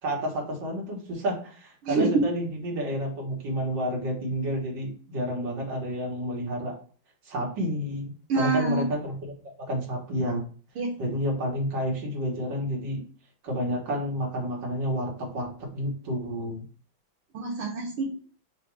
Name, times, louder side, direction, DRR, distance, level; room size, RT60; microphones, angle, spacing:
voice 1, 0.0-6.8 7.3-10.4 11.0-13.0 13.4-16.6, equal, 60° right, -1 dB, 2.0 m, -30 dB
voice 2, 8.3-8.8 10.8-10.9 17.3-18.2, right 4 dB, 85° right, -1 dB, 1.8 m, -26 dB
4.0 x 2.6 x 4.6 m, 0.40 s
omnidirectional pair, 2.2 m